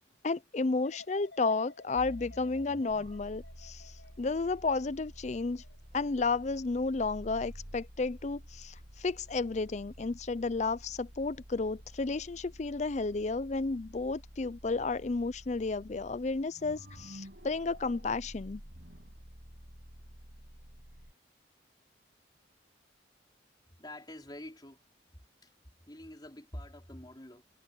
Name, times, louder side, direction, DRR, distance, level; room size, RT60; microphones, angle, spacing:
voice 1, 0.2-3.9 4.2-5.6 5.9-18.6, left 3 dB, 40° left, 0.5 m, -32 dB
sound 1, 0.8-7.8 8.2-8.6, left 3 dB, 75° left, 5.5 m, -57 dB
sound 2, 1.9-21.1, equal, 60° right, 6.5 m, -50 dB
voice 2, 23.7-24.8 25.1-25.5 25.9-27.4, left 1 dB, 25° left, 4.4 m, -47 dB
head